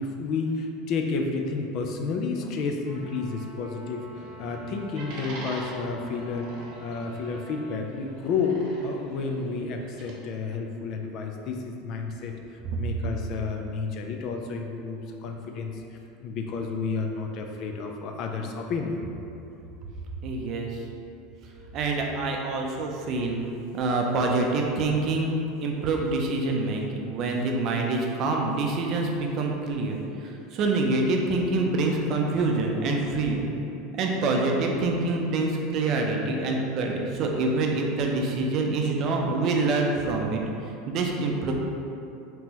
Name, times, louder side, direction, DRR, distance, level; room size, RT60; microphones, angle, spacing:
voice 1, 0.0-4.1 4.4-19.0, left 4 dB, 50° left, 3 dB, 0.4 m, -31 dB
Trumpet, 2.8-7.8, equal, 85° left, 1.3 m, -48 dB
sound 1, 3.8-10.1, right 2 dB, 60° right, 0.8 m, -44 dB
voice 2, 20.2-20.8 21.7-23.4 23.7-33.5 33.9-41.5, right 3 dB, 45° right, 1 dB, 0.5 m, -26 dB
3.7 x 2.9 x 2.9 m, 2.7 s
supercardioid pair, 130°, 0 cm